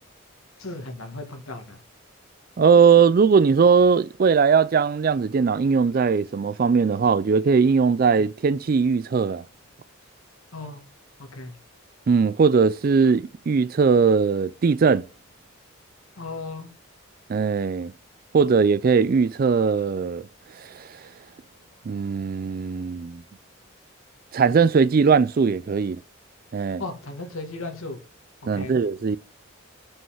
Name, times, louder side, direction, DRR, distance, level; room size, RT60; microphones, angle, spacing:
voice 1, 0.6-1.8 10.5-10.8 11.2-11.5 16.2-16.7 26.8-28.0 28.4-28.8, left 2 dB, 85° left, 1.8 m, -36 dB
voice 2, 2.6-9.4 12.1-15.0 17.3-17.9 18.3-20.3 20.7-20.9 21.9-23.2 24.3-26.0 26.5-26.8 28.5-29.2, right 5 dB, 45° right, 0.3 m, -19 dB
5.5 x 5.5 x 5.7 m
head